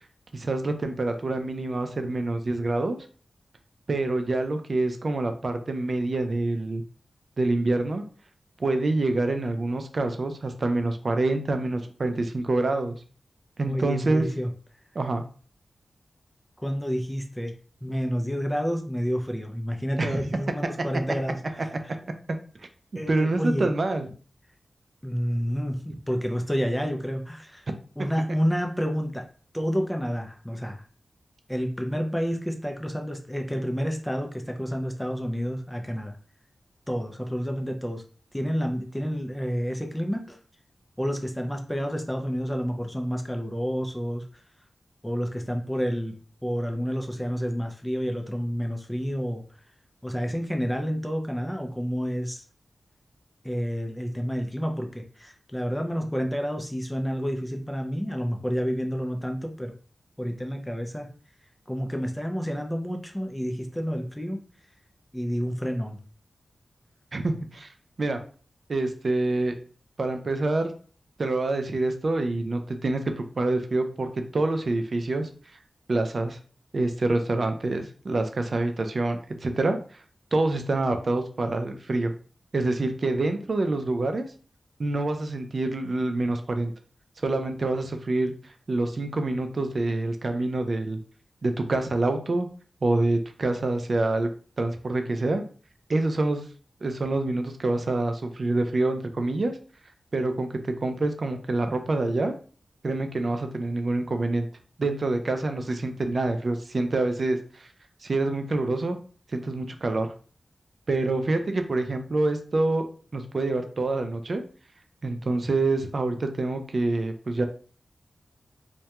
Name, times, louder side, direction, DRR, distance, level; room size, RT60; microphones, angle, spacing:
voice 1, 0.3-3.0 3.9-6.8 7.4-8.0 8.6-13.0 13.6-14.3 15.0-15.2 20.0-20.2 23.1-24.1 67.1-67.7 68.0-68.2 68.7-69.6 70.0-70.7 71.2-75.3 75.9-76.4 76.7-79.8 80.3-82.1 82.5-84.3 84.8-86.7 87.2-91.0 91.4-92.5 92.8-94.3 94.6-95.4 95.9-96.4 96.8-99.5 100.1-102.3 102.8-104.5 104.8-107.7 108.0-109.0 109.3-110.1 110.9-112.9 113.1-114.4 115.0-117.5, right 2 dB, 60° right, 7 dB, 0.4 m, -26 dB
voice 2, 13.7-14.5 16.6-17.5 17.8-21.9 23.0-23.7 25.0-27.7 28.0-29.2 29.5-30.8 31.5-36.2 36.9-38.0 38.3-40.4 41.0-44.4 45.0-46.2 46.4-49.6 50.0-52.4 53.4-59.8 60.2-61.1 61.7-64.4 65.1-66.0, equal, 5° left, 3 dB, 0.4 m, -29 dB
2.2 x 2.1 x 2.8 m, 0.41 s
cardioid pair, 60°, 0 cm